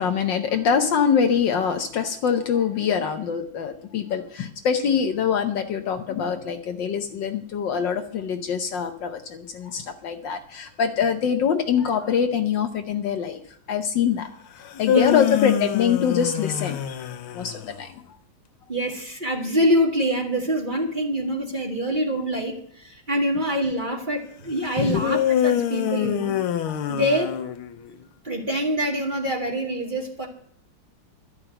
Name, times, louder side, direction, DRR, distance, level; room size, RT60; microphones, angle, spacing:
voice 1, 0.0-13.4 13.7-14.3 14.6-17.0 17.3-18.0 24.8-25.0 26.7-26.8, left 7 dB, 65° left, 6 dB, 1.5 m, -24 dB
sound 1, 14.6-17.8 25.0-27.9, left 11 dB, 85° left, 1.7 m, -25 dB
voice 2, 18.7-26.4 26.9-27.3 28.2-30.3, equal, 25° right, 0 dB, 1.9 m, -25 dB
12.5 x 5.9 x 8.9 m, 0.62 s
omnidirectional pair, 2.3 m